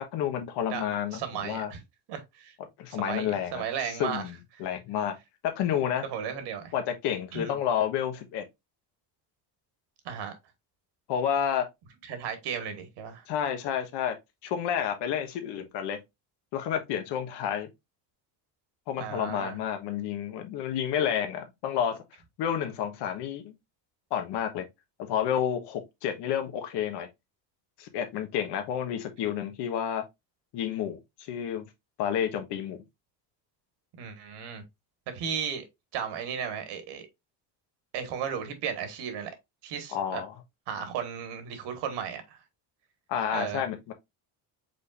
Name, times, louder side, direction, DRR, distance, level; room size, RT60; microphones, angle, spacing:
voice 1, 0.1-1.7 2.8-5.1 5.4-6.0 6.7-8.4 11.1-11.6 13.3-14.1 14.4-16.0 16.5-17.7 18.9-22.0 22.4-23.5 24.1-24.7 25.0-27.1 27.8-30.1 30.5-31.7 32.0-32.8 39.9-40.3 43.1-43.9, left 9 dB, 75° left, 1.2 m, -30 dB
voice 2, 1.1-1.8 2.1-2.5 3.0-4.2 6.0-6.7 7.3-7.5 10.0-10.3 12.1-13.2 19.0-19.6 34.0-34.6 35.1-35.6 35.9-37.0 37.9-39.3 39.6-40.2 40.7-42.4 43.3-43.6, right 7 dB, 75° right, 1.5 m, -35 dB
5.2 x 4.1 x 2.4 m
cardioid pair, 135°, 42 cm